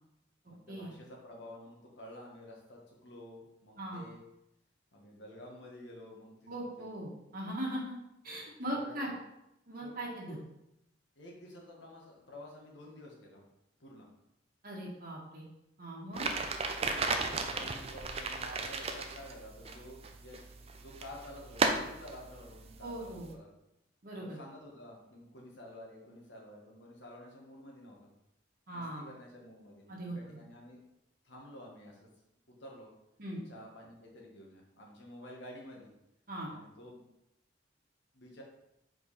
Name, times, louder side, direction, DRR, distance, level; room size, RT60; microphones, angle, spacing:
voice 1, 0.4-4.2 4.9-6.9 8.7-9.0 9.8-9.9 10.3-10.4 11.1-13.4 13.8-14.1 17.2-20.4 20.7-23.5 24.2-28.1 28.7-30.8 31.2-32.1 32.6-32.9 33.4-35.9 36.5-37.0 38.1-38.4, left 1 dB, 70° left, -1 dB, 1.6 m, -51 dB
voice 2, 6.4-7.9 8.2-9.1 9.7-10.4 14.6-15.4 15.8-16.3 22.8-23.3 24.0-24.4 28.7-29.0 29.9-30.4 33.2-33.4 36.3-36.5, right 1 dB, 50° right, -4 dB, 1.5 m, -39 dB
sound 1, 16.1-23.3, right 3 dB, 35° right, 0.5 m, -36 dB
5.1 x 4.8 x 4.2 m, 0.86 s
head